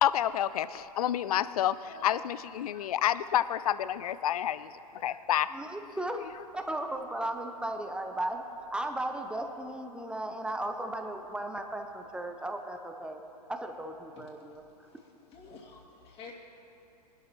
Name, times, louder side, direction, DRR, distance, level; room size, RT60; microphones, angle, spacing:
voice 1, 0.0-5.5, left 11 dB, 65° left, 16 dB, 0.4 m, -29 dB
voice 2, 5.5-13.2 13.5-14.9, right 1 dB, 5° right, 5 dB, 0.6 m, -36 dB
voice 3, 15.3-16.3, left 5 dB, 30° left, -3 dB, 2.6 m, -49 dB
22.5 x 12.0 x 3.0 m, 2.9 s
figure-of-eight pair, 105°, 21 cm